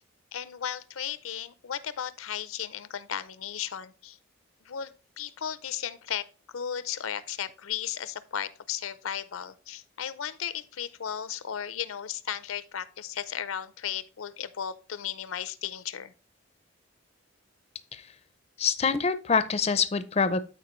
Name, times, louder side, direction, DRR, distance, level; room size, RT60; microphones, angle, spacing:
voice 1, 0.3-4.2 4.6-16.1, left 9 dB, 90° left, 0.5 m, -35 dB
voice 2, 18.6-20.4, left 5 dB, 30° left, 0.4 m, -25 dB
12.5 x 4.5 x 3.1 m
head